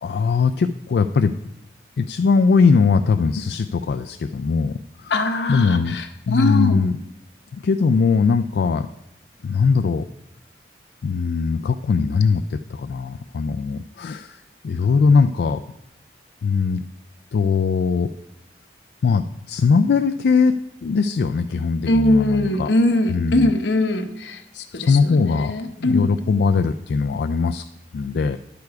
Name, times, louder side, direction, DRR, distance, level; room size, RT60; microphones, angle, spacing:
voice 1, 0.0-1.3 2.0-5.1 5.5-6.0 6.3-7.0 7.5-8.9 9.4-10.1 11.0-15.6 16.4-16.8 17.3-18.1 19.0-20.5 20.8-22.7 23.1-23.5 24.7-27.6 27.9-28.4, left 5 dB, 65° left, 7 dB, 0.3 m, -20 dB
voice 2, 5.1-6.8 21.9-26.1, left 1 dB, 85° left, 6 dB, 0.9 m, -21 dB
10.5 x 6.9 x 4.7 m, 0.84 s
head